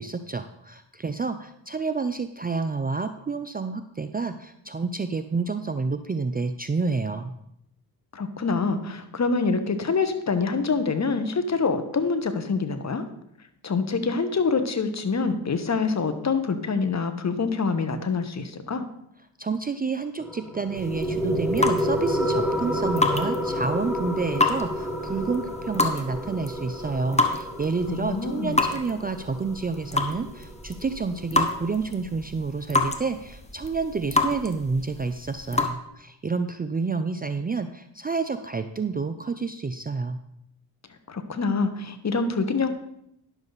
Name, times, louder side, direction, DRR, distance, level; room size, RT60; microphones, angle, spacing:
voice 1, 0.0-7.3 19.4-40.2, right 4 dB, 20° right, 10 dB, 0.5 m, -29 dB
voice 2, 8.1-13.0 13.6-18.9 27.9-28.6 41.1-42.7, left 4 dB, 35° left, 9 dB, 1.2 m, -26 dB
sound 1, 20.2-31.2, equal, 5° right, 1.6 m, -30 dB
sound 2, 20.8-35.7, left 2 dB, 15° left, 1.2 m, -29 dB
10.5 x 7.0 x 4.0 m, 0.77 s
supercardioid pair, 65°, 46 cm